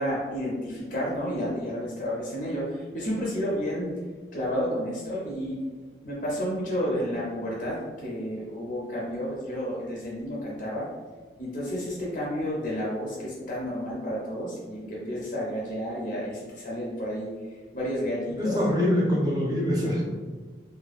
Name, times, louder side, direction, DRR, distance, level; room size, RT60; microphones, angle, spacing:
voice 1, 0.0-3.9 4.3-5.6 6.0-10.9 11.4-18.6, equal, 45° left, -5 dB, 0.5 m, -31 dB
voice 2, 18.4-20.0, left 1 dB, 20° right, -5 dB, 0.6 m, -24 dB
2.5 x 2.1 x 2.3 m, 1.4 s
head